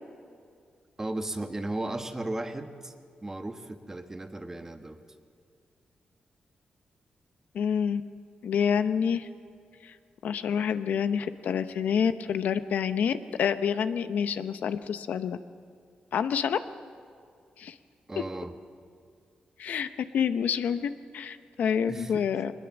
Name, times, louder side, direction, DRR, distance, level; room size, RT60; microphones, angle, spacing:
voice 1, 1.0-2.9 3.2-5.0 18.1-18.5 21.9-22.2, right 2 dB, 20° right, 7 dB, 1.3 m, -35 dB
voice 2, 7.5-8.0 8.4-9.3 9.8-9.9 10.2-15.4 16.1-16.6 17.6-17.7 19.6-19.9 20.1-22.5, left 7 dB, 85° left, 11 dB, 0.7 m, -27 dB
21.5 x 20.0 x 7.2 m, 2.3 s
wide cardioid pair, 110°, 3 cm